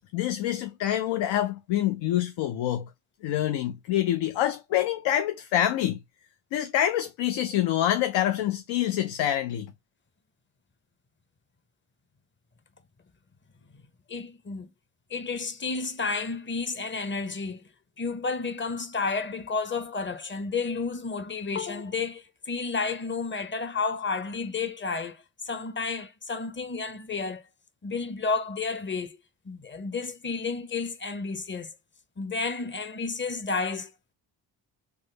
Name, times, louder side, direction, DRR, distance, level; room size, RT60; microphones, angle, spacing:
voice 1, 0.1-2.9 3.2-6.0 6.5-9.7, left 12 dB, 80° left, 0.5 m, -26 dB
voice 2, 14.1-14.7 15.1-17.6 18.0-27.4 27.8-29.2 29.4-31.7 32.2-33.9, left 4 dB, 25° left, 0.7 m, -31 dB
3.6 x 2.1 x 3.1 m
cardioid pair, 80°, 45 cm